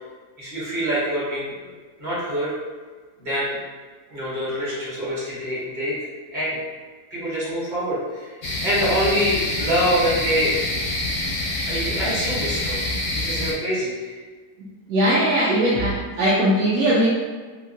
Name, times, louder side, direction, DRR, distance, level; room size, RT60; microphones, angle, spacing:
voice 1, 0.4-1.7 2.0-2.5 3.2-3.6 4.1-5.9 6.3-6.6 7.1-10.6 11.7-12.8 13.1-14.2, equal, 40° right, -9 dB, 0.9 m, -25 dB
sound 1, 8.4-13.5, left 1 dB, 60° left, 0.7 m, -26 dB
voice 2, 14.9-17.1, right 1 dB, 75° right, -7 dB, 1.0 m, -19 dB
2.9 x 2.5 x 2.6 m, 1.4 s
omnidirectional pair, 1.6 m